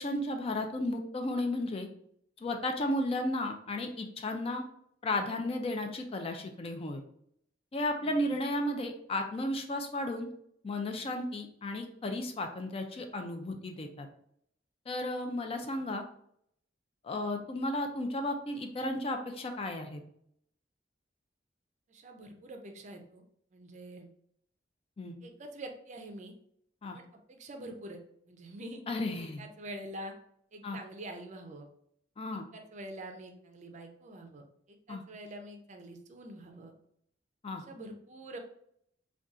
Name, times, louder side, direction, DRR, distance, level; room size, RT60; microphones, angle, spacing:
voice 1, 0.0-1.9 2.4-4.6 5.0-7.0 7.7-10.3 10.6-14.1 14.9-16.0 17.0-20.0 25.0-25.1 26.8-27.0 28.9-29.4 30.6-30.8 32.2-32.4 34.9-35.0 37.4-37.6, left 1 dB, 30° left, 4 dB, 0.4 m, -34 dB
voice 2, 21.9-23.2 23.5-24.1 25.2-26.3 26.9-27.0 27.3-28.0 28.3-28.8 29.2-30.1 30.5-31.7 32.5-36.7 37.7-38.4, right 1 dB, 40° right, 4 dB, 0.4 m, -45 dB
3.9 x 2.3 x 2.4 m, 0.69 s
head